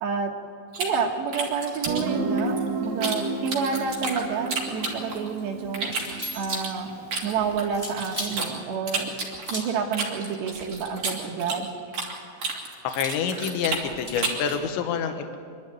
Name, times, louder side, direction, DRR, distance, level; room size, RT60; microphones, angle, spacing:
voice 1, 0.0-0.3 0.8-5.9 6.3-6.9 7.2-9.1 9.5-11.7, right 6 dB, 70° right, 3 dB, 3.2 m, -29 dB
sound 1, 0.7-3.2 3.5-5.3 5.7-8.5 8.9-12.1 12.4-14.5, right 4 dB, 40° right, 2.8 m, -31 dB
Guitar, 1.9-7.4, right 3 dB, 55° right, 3.5 m, -31 dB
sound 2, 5.9-6.7 7.7-8.4 9.4-9.8 10.9-11.7 12.9-14.7, equal, 5° left, 2.1 m, -38 dB
voice 2, 12.8-15.4, left 7 dB, 75° left, 6 dB, 3.3 m, -27 dB
25.0 x 12.0 x 9.5 m, 2.3 s
omnidirectional pair, 5.5 m